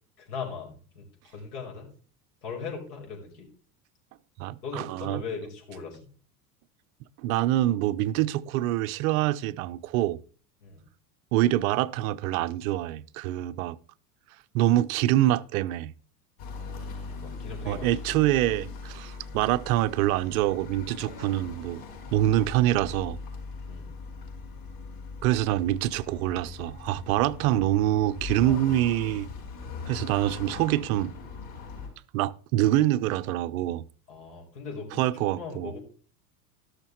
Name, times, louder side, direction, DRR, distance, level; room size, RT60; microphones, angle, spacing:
voice 1, 0.2-1.9 2.4-3.5 4.6-6.0 10.6-10.9 16.5-18.1 23.7-23.9 27.5-27.6 28.4-28.6 34.1-35.8, left 5 dB, 75° left, 5.1 m, -39 dB
voice 2, 4.4-5.2 7.2-10.2 11.3-13.8 14.5-15.9 17.6-21.8 22.1-23.2 25.2-29.3 29.9-31.1 32.1-33.9 35.0-35.7, right 14 dB, 65° right, 0.7 m, -25 dB
sound 1, 16.4-31.9, left 4 dB, 50° left, 5.0 m, -40 dB
12.5 x 6.6 x 4.5 m
hypercardioid pair, 90°, 46 cm